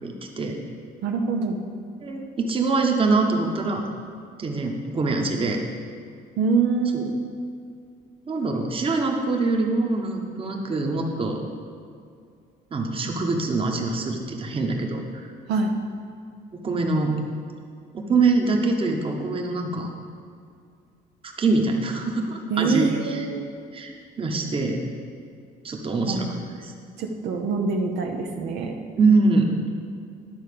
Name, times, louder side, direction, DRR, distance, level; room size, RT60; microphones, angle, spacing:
voice 1, 0.0-0.6 2.0-3.9 4.4-5.6 6.9-7.1 8.3-11.4 12.7-15.3 16.5-17.2 17.9-19.9 21.2-23.3 23.7-24.8 25.6-26.7 29.0-29.5, right 3 dB, 30° right, 2 dB, 1.1 m, -24 dB
voice 2, 1.0-1.6 6.4-7.1 15.5-15.7 22.5-23.5 26.1-26.3 27.0-28.8, right 4 dB, 85° right, 3 dB, 0.9 m, -24 dB
10.5 x 4.4 x 6.8 m, 2.3 s
cardioid pair, 110°, 17 cm